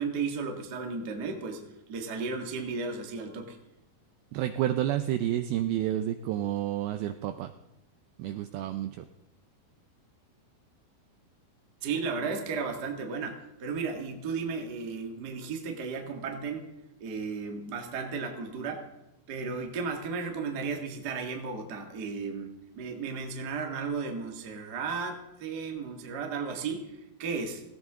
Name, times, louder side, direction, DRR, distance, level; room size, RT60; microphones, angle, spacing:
voice 1, 0.0-1.6 1.9-3.6 11.8-16.7 17.0-18.8 19.3-27.6, right 5 dB, 60° right, 2 dB, 1.0 m, -34 dB
voice 2, 4.3-7.5 8.2-9.0, right 12 dB, 85° right, 9 dB, 2.2 m, -30 dB
17.5 x 17.0 x 3.6 m, 0.88 s
omnidirectional pair, 5.1 m